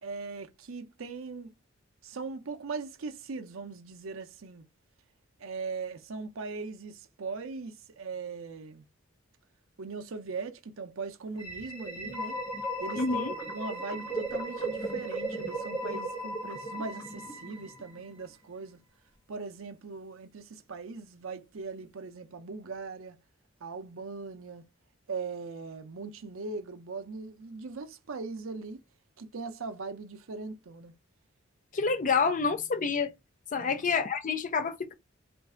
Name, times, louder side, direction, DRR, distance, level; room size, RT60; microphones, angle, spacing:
voice 1, 0.0-1.5 2.0-4.6 5.4-8.8 9.8-12.4 12.8-18.8 19.3-23.2 23.6-24.6 25.1-28.8 29.2-30.9 33.6-33.9, right 4 dB, 85° right, 0.6 m, -40 dB
sound 1, 11.3-18.1, right 1 dB, 25° left, 1.2 m, -36 dB
voice 2, 13.0-13.3 31.7-33.1 33.5-34.9, left 5 dB, 40° left, 0.5 m, -28 dB
3.2 x 2.6 x 3.6 m
head